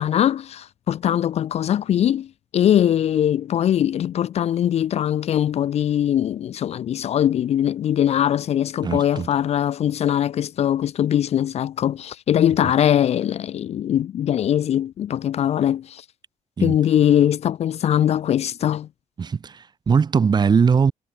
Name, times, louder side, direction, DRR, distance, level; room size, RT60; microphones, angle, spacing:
voice 1, 0.0-16.0 16.6-18.9, left 10 dB, 50° left, 0.5 m, -21 dB
voice 2, 8.8-9.3 16.6-16.7 19.2-20.9, right 6 dB, 30° right, 1.4 m, -20 dB
cardioid pair, 150°, 14 cm